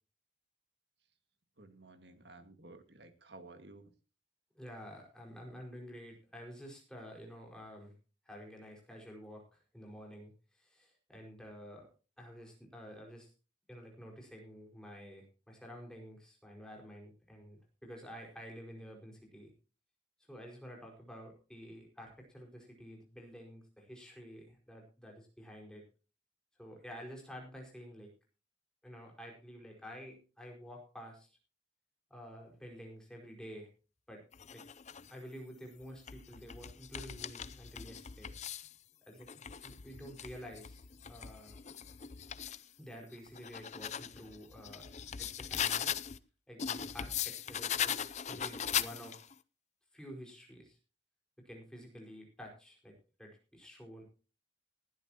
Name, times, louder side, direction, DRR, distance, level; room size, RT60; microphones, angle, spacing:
voice 1, 1.6-3.9, right 2 dB, 60° right, 8 dB, 2.0 m, -54 dB
voice 2, 4.5-7.9 8.2-11.9 12.2-13.3 13.7-19.5 20.3-25.8 26.6-28.1 28.8-31.4 32.1-33.7 34.1-34.2 34.5-34.6 35.1-38.3 39.1-39.3 39.6-41.6 42.8-44.9 45.1-46.0 46.5-49.3 49.9-50.8 51.4-54.0, equal, 5° left, -1 dB, 5.0 m, -50 dB
sound 1, 34.3-35.1 35.8-38.7 39.2-42.6 43.1-46.2 46.6-49.3, left 9 dB, 40° left, 0.5 m, -39 dB
20.0 x 12.0 x 2.9 m, 0.34 s
head